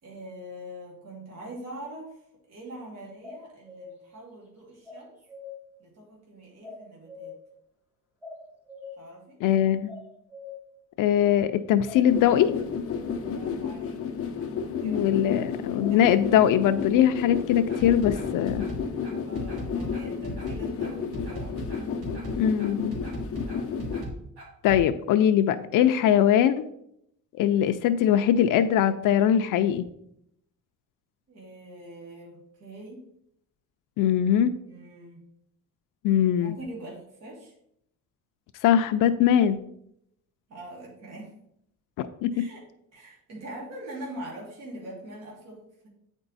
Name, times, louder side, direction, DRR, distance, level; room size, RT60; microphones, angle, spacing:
voice 1, 0.0-2.2 2.5-5.1 5.8-7.4 9.0-9.4 13.2-14.0 14.3-15.1 15.9-16.0 19.2-21.6 31.3-33.0 34.6-35.2 36.4-37.5 40.5-41.4 42.3-42.6 42.9-45.9, right 1 dB, 55° right, -3 dB, 2.3 m, -43 dB
sound 1, 3.2-3.9 4.9-5.5 6.6-7.4 8.2-8.9 9.9-10.6 11.9-12.5 15.8-16.4, left 3 dB, 5° right, 1.3 m, -43 dB
voice 2, 9.4-9.9 11.0-12.5 14.8-18.7 22.4-23.0 24.6-26.6 27.3-29.9 34.0-34.5 36.0-36.6 38.6-39.6 42.2-42.3, left 10 dB, 85° left, 9 dB, 0.5 m, -21 dB
sound 2, 12.1-24.0, left 6 dB, 45° left, 0.7 m, -32 dB
sound 3, 17.7-24.8, equal, 70° right, 2.5 m, -37 dB
8.9 x 4.5 x 4.0 m, 0.74 s
cardioid pair, 180°, 31 cm